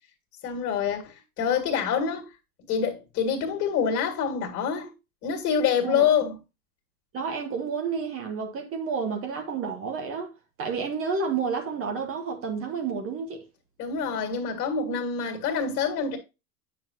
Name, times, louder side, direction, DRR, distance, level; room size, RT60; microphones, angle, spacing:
voice 1, 0.4-2.3 2.7-4.9 5.2-6.4 13.8-16.2, left 7 dB, 35° left, 2.1 m, -26 dB
voice 2, 7.1-10.3 10.6-13.4, right 5 dB, 30° right, 1.4 m, -30 dB
9.2 x 5.8 x 2.7 m
figure-of-eight pair, 90°, 47 cm